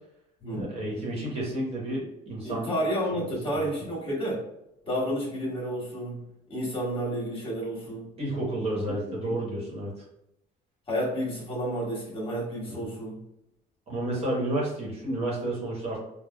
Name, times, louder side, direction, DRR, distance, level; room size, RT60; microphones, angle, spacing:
voice 1, 0.5-2.7 3.1-3.6 8.2-9.9 12.8-12.9 13.9-16.0, right 1 dB, 35° right, -4 dB, 1.2 m, -31 dB
voice 2, 2.4-4.4 4.9-6.2 6.5-8.1 8.9-9.0 9.2-9.3 10.9-13.2, equal, 30° left, -5 dB, 1.4 m, -31 dB
3.5 x 2.1 x 2.2 m, 0.83 s
cardioid pair, 110°, 17 cm